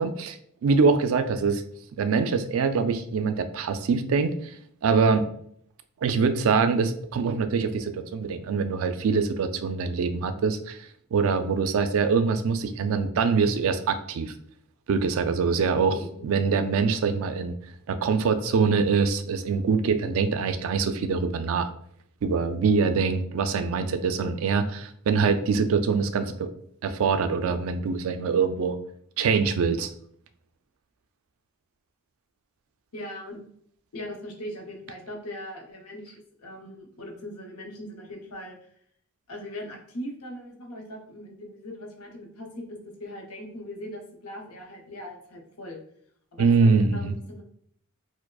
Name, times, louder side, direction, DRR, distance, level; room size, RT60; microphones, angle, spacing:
voice 1, 0.0-1.6 2.0-4.5 4.8-5.3 6.0-14.3 14.9-16.0 16.2-17.5 17.9-21.7 22.2-26.5 26.8-28.8 29.2-29.9 46.4-47.1, right 5 dB, 65° right, 10 dB, 0.3 m, -24 dB
voice 2, 32.9-33.4 33.9-38.7 39.3-45.8 46.3-47.4, left 1 dB, 80° left, 1 dB, 0.8 m, -40 dB
4.6 x 2.0 x 2.3 m, 0.65 s
head